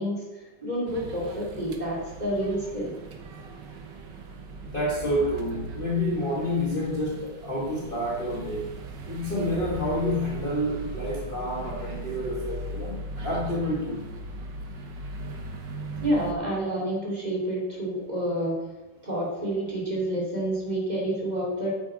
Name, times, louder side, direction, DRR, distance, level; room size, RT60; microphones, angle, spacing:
voice 1, 0.0-2.9 16.0-18.6 19.0-21.7, right 1 dB, 15° right, -4 dB, 2.5 m, -29 dB
sound 1, 0.9-16.3, right 3 dB, 70° right, 1.0 m, -38 dB
voice 2, 4.6-8.7 9.1-14.1, left 1 dB, 45° left, -4 dB, 0.7 m, -29 dB
9.3 x 9.1 x 3.9 m, 1.2 s
omnidirectional pair, 3.4 m